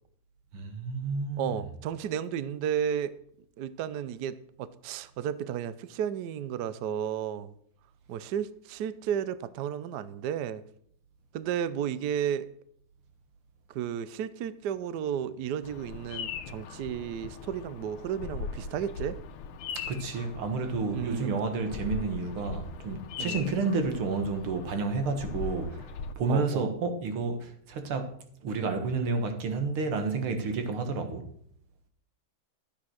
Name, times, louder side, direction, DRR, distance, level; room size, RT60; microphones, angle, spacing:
voice 1, 0.5-1.6 19.8-25.9 26.2-28.1 28.4-31.3, right 4 dB, 85° right, 2.4 m, -30 dB
voice 2, 1.4-3.1 3.6-7.5 8.1-10.6 11.3-12.5 13.7-19.2 20.9-21.5 23.2-23.5 26.3-26.7, right 9 dB, 65° right, 1.1 m, -33 dB
Bird vocalization bird call bird song, 15.6-26.1, left 5 dB, 85° left, 1.8 m, -40 dB
13.0 x 8.5 x 6.3 m
omnidirectional pair, 2.3 m